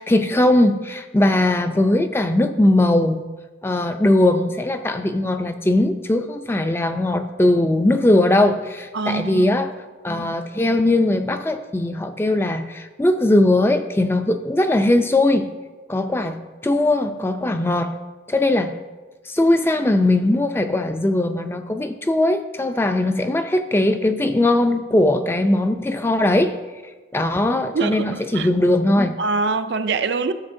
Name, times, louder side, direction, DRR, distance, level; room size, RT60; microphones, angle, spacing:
voice 1, 0.0-3.3 3.6-9.7 10.0-15.5 15.9-18.0 18.3-18.7 19.3-26.5 27.1-29.2, left 1 dB, 15° left, 8 dB, 0.3 m, -19 dB
voice 2, 8.9-9.7 27.7-28.5 29.2-30.3, right 4 dB, 70° right, 10 dB, 0.5 m, -24 dB
13.0 x 7.0 x 2.6 m, 1.3 s
head